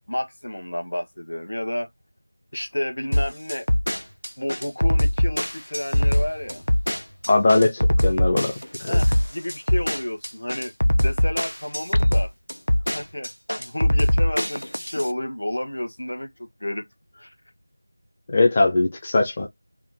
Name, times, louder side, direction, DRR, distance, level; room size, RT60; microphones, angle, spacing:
voice 1, 0.1-1.9 2.5-3.7 4.4-6.6 8.9-10.7 11.0-12.3 12.9-13.3 13.6-16.9 17.1-17.3, left 1 dB, 70° left, 1.4 m, -31 dB
sound 1, 3.1-15.1, equal, 90° left, 0.7 m, -22 dB
voice 2, 7.3-9.0 18.3-19.5, left 2 dB, 20° left, 0.6 m, -20 dB
4.7 x 2.4 x 3.5 m
figure-of-eight pair, 175°, 0 cm